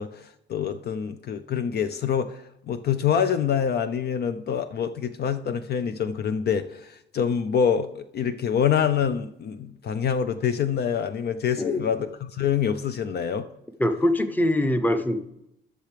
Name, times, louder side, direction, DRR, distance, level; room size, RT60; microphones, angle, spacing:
voice 1, 0.0-13.5, left 8 dB, 55° left, 11 dB, 0.5 m, -26 dB
voice 2, 11.6-12.0 13.8-15.2, left 1 dB, 10° left, 9 dB, 0.8 m, -23 dB
13.5 x 6.7 x 3.3 m, 0.82 s
cardioid pair, 90°, 20 cm